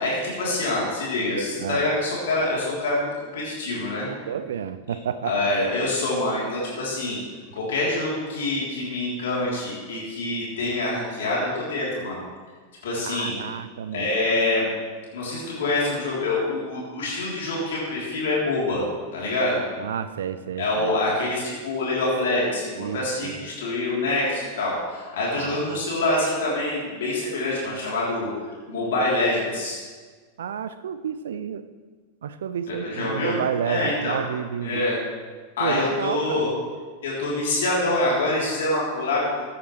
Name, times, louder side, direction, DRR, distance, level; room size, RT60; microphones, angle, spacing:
voice 1, 0.0-4.1 5.2-7.2 7.5-12.2 12.8-13.4 13.9-14.7 15.1-18.8 19.1-19.6 20.6-28.3 28.7-29.8 32.7-33.4 33.6-34.2 34.6-35.0 35.6-36.5 37.0-39.4, left 2 dB, 60° left, -5 dB, 3.6 m, -25 dB
voice 2, 1.6-1.9 4.1-5.3 13.0-14.1 19.8-21.2 22.8-23.4 25.3-25.8 30.4-31.6 32.2-34.9 35.6-36.5, right 8 dB, 65° right, 13 dB, 0.6 m, -31 dB
15.5 x 9.9 x 3.3 m, 1.5 s
figure-of-eight pair, 90°, 0 cm